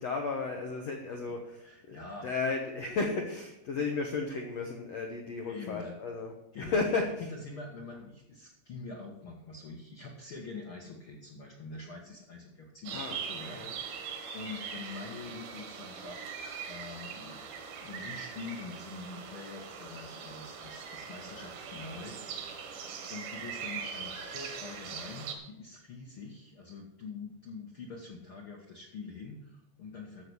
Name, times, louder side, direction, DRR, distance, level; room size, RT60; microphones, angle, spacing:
voice 1, 0.0-7.1 12.9-13.2 13.5-13.7, left 4 dB, 80° left, 2 dB, 1.4 m, -34 dB
voice 2, 1.3-2.3 5.5-6.0 6.5-22.6 23.1-30.2, left 4 dB, 60° left, -1 dB, 1.4 m, -45 dB
sound 1, 12.9-25.4, right 6 dB, 80° right, 3.8 m, -41 dB
14.0 x 7.0 x 6.3 m, 0.85 s
omnidirectional pair, 4.9 m